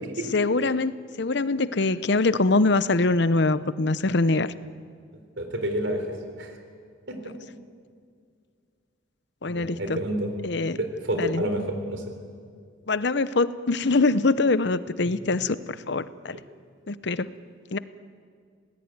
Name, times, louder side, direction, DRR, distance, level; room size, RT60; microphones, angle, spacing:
voice 1, 0.3-4.5 9.4-10.0 10.4-10.8 11.2-11.5 12.9-16.4 16.9-17.3 17.7-17.8, left 3 dB, 60° left, 15 dB, 0.8 m, -23 dB
voice 2, 5.4-6.0 6.4-6.5 7.1-7.3 9.5-10.3 10.8-12.0 15.0-15.1 16.3-16.4, right 1 dB, 70° right, 6 dB, 4.0 m, -29 dB
26.5 x 18.5 x 9.5 m, 2.2 s
head